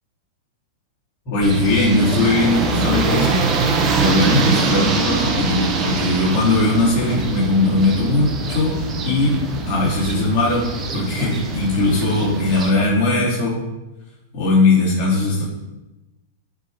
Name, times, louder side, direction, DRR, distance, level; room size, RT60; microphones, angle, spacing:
voice 1, 1.2-3.5 3.9-8.8 9.0-9.3 9.7-10.6 10.9-13.6 14.3-15.4, left 2 dB, 35° left, -12 dB, 3.0 m, -19 dB
sound 1, 1.4-12.7, right 4 dB, 25° right, 1.0 m, -23 dB
10.5 x 3.8 x 5.0 m, 1.0 s
supercardioid pair, 145°, 0 cm